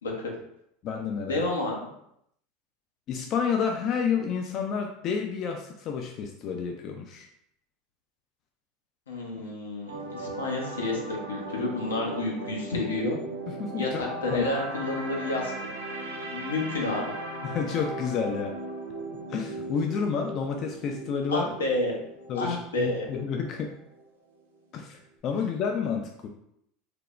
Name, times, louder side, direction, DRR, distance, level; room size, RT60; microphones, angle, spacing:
voice 1, 0.0-0.3 1.2-1.9 9.1-13.2 13.8-15.5 16.3-17.0 21.3-22.0 22.4-23.1, left 2 dB, 85° left, -1 dB, 0.6 m, -30 dB
voice 2, 0.8-1.4 3.1-7.3 13.5-14.0 14.3-14.4 17.4-18.6 19.3-21.5 22.3-23.7 24.7-26.3, left 6 dB, 50° left, 3 dB, 0.3 m, -30 dB
sound 1, 9.9-24.0 24.3-24.6, right 2 dB, 90° right, 0.5 m, -38 dB
3.2 x 2.0 x 2.4 m, 0.75 s
hypercardioid pair, 85°, 0 cm